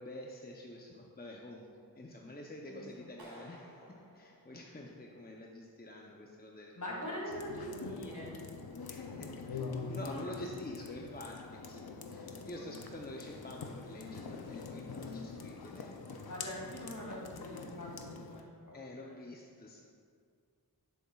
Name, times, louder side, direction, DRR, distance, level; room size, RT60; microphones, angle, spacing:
voice 1, 0.0-1.7 2.0-3.6 4.1-7.2 8.9-16.2 18.7-19.8, left 1 dB, 25° left, -1 dB, 0.6 m, -47 dB
voice 2, 2.7-3.1 4.4-4.5 6.8-8.4 10.0-10.3 16.3-19.1, equal, 55° left, -3 dB, 2.0 m, -43 dB
Clapping, 3.2-5.2, right 1 dB, 75° right, 1.4 m, -55 dB
sound 1, 7.3-18.4, left 4 dB, 85° left, 0.6 m, -44 dB
11.5 x 7.0 x 2.3 m, 2.1 s
wide cardioid pair, 60°, 36 cm